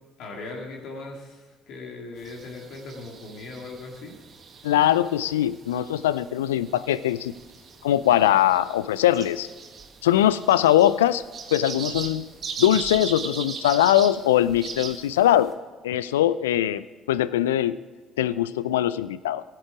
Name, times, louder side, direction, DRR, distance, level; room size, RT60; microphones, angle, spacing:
voice 1, 0.2-4.2, left 3 dB, 65° left, 0 dB, 2.2 m, -39 dB
sound 1, 2.2-15.5, right 5 dB, 45° right, 1.6 m, -39 dB
voice 2, 4.6-7.3 7.8-9.5 10.0-11.2 11.5-12.3 12.6-15.5 15.8-17.8 18.2-19.4, left 12 dB, 80° left, 17 dB, 0.3 m, -21 dB
15.5 x 7.7 x 4.9 m, 1.4 s
hypercardioid pair, 50°, 0 cm